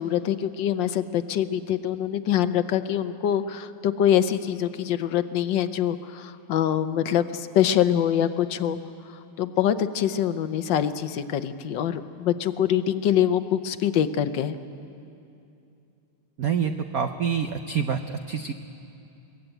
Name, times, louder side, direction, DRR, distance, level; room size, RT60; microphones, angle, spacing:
voice 1, 0.0-8.8 9.4-14.6, left 10 dB, 65° left, 11 dB, 1.3 m, -24 dB
voice 2, 16.4-18.0 18.3-18.5, right 7 dB, 70° right, 7 dB, 0.8 m, -26 dB
22.5 x 18.5 x 8.9 m, 2.7 s
omnidirectional pair, 2.4 m